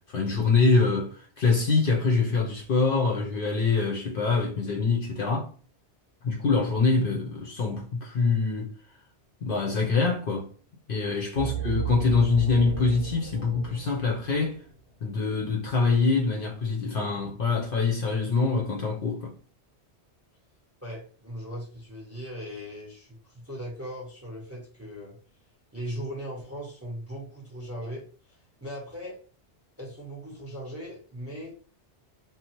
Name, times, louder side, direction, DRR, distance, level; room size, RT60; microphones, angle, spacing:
voice 1, 0.1-5.5 6.2-8.7 9.4-10.5 10.9-14.6 15.0-19.3, left 4 dB, 60° left, 0.7 m, -24 dB
sound 1, 11.4-14.8, right 6 dB, 90° right, 1.0 m, -35 dB
voice 2, 20.8-25.2 25.7-29.2 29.8-31.5, equal, 15° right, 0.6 m, -39 dB
2.7 x 2.0 x 2.8 m
omnidirectional pair, 1.2 m